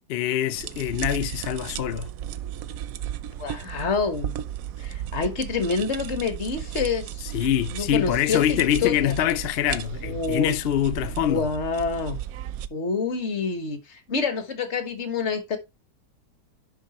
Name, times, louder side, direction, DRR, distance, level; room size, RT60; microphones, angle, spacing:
voice 1, 0.1-2.1 7.3-11.5, left 11 dB, 70° left, 0.5 m, -24 dB
sound 1, 0.5-12.7, right 11 dB, 70° right, 0.9 m, -35 dB
voice 2, 3.4-4.3 4.8-7.2 7.7-9.1 10.0-10.5 11.2-12.2 12.7-15.6, left 5 dB, 45° left, 1.5 m, -27 dB
10.5 x 3.7 x 4.1 m
omnidirectional pair, 1.8 m